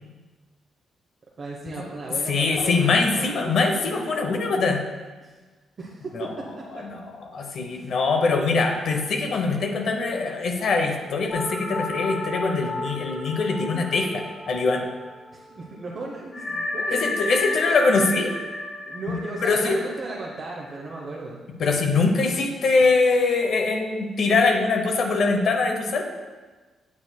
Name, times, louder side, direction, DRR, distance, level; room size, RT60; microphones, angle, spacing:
voice 1, 1.4-3.8 5.2-5.3 5.8-6.8 7.7-7.9 15.3-17.5 18.9-21.4, right 3 dB, 45° right, -3 dB, 0.9 m, -36 dB
voice 2, 2.3-4.8 6.1-6.3 6.7-14.8 16.9-18.3 19.4-19.8 21.6-26.0, left 3 dB, 65° left, 4 dB, 0.8 m, -23 dB
sound 1, 11.3-15.3 15.6-15.7 16.3-21.0, left 2 dB, 40° left, 1.1 m, -32 dB
8.4 x 6.9 x 2.3 m, 1.3 s
cardioid pair, 85°, 0 cm